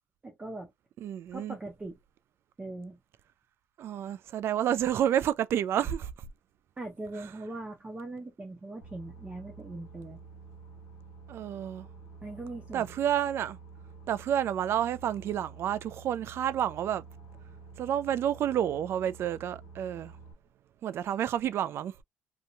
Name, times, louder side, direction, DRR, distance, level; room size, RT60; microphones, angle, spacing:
voice 1, 0.2-0.7 1.3-2.0 2.6-3.0 6.8-10.2 12.2-12.9, right 2 dB, 25° right, 0.7 m, -40 dB
voice 2, 1.0-1.6 3.8-6.1 7.2-7.3 11.3-11.9 12.7-13.6 14.1-17.1 17.8-20.2 20.8-22.0, right 10 dB, 65° right, 0.3 m, -30 dB
Boat Water vehicle, 8.8-20.3, right 4 dB, 90° left, 0.7 m, -49 dB
2.9 x 2.1 x 2.6 m
cardioid pair, 80°, 5 cm